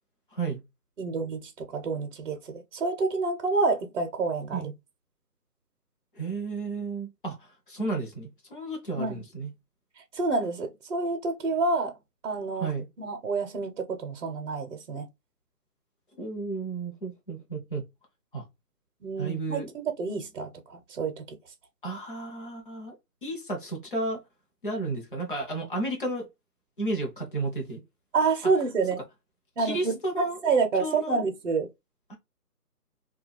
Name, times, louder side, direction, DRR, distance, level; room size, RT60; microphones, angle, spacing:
voice 1, 1.0-4.7 8.9-9.2 10.1-12.0 12.2-12.7 13.0-15.1 19.0-21.4 28.1-29.0 29.6-31.7, right 4 dB, 50° right, 0.6 m, -28 dB
voice 2, 6.2-7.4 7.7-9.5 12.5-12.9 16.2-17.8 18.3-18.4 19.2-19.7 21.8-22.9 23.2-24.2 24.6-26.3 26.8-27.8 29.6-30.4 30.8-31.2 32.1-32.2, right 3 dB, 35° left, 0.6 m, -32 dB
2.3 x 2.2 x 3.2 m
figure-of-eight pair, 165°, 47 cm